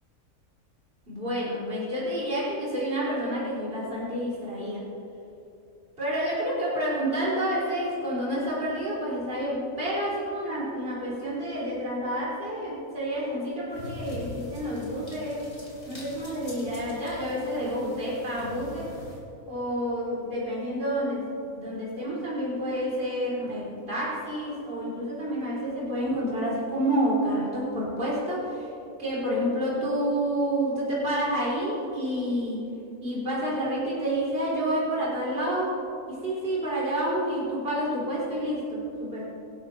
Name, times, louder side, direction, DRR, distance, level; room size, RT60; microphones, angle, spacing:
voice 1, 1.1-4.8 6.0-15.4 15.9-18.9 19.5-21.3 21.6-28.7 29.0-32.6 33.0-35.7 36.1-39.2, equal, 40° right, -7 dB, 3.7 m, -29 dB
sound 1, 13.7-19.2, left 1 dB, 40° left, 3.8 m, -43 dB
25.0 x 12.5 x 3.2 m, 2.9 s
omnidirectional pair, 1.5 m